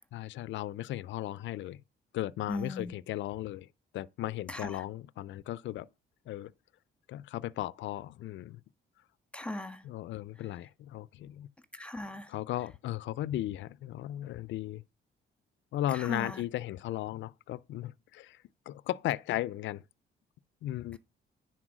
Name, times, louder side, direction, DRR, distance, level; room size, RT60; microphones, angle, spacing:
voice 1, 0.1-1.8 2.1-3.7 3.9-5.9 6.3-6.5 7.1-8.6 9.8-11.5 12.3-14.8 15.7-19.8 20.6-21.0, left 14 dB, 70° left, 0.4 m, -36 dB
voice 2, 2.5-2.9 4.5-4.8 9.3-9.8 11.7-12.3 15.9-16.4, left 1 dB, 5° left, 1.5 m, -38 dB
9.9 x 4.4 x 6.1 m
cardioid pair, 90°, 20 cm